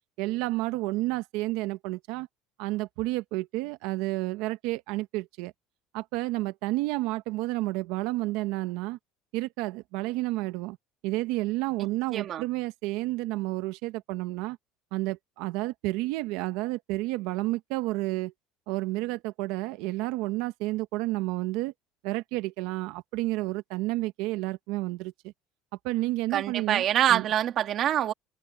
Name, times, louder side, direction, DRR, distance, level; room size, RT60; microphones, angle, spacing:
voice 1, 0.2-2.3 2.6-5.5 5.9-9.0 9.3-10.8 11.0-14.6 14.9-18.3 18.7-21.7 22.0-25.3 25.8-27.2, right 19 dB, 75° right, 1.1 m, -30 dB
voice 2, 12.1-12.4 26.3-28.1, right 11 dB, 45° right, 2.3 m, -25 dB
cardioid pair, 130°, 0 cm